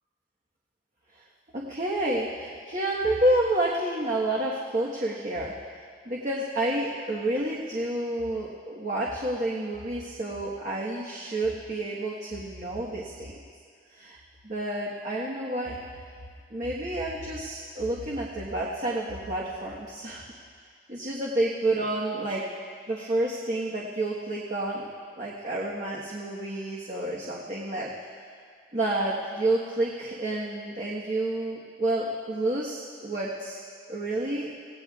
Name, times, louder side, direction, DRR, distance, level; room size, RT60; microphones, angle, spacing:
voice 1, 1.5-5.5 6.0-13.3 13.9-14.2 14.4-15.8 16.5-20.3 20.9-22.4 22.9-24.9 25.2-28.1 28.7-34.5, right 1 dB, 40° right, -5 dB, 1.4 m, -29 dB
25.5 x 17.0 x 2.4 m, 2.1 s
head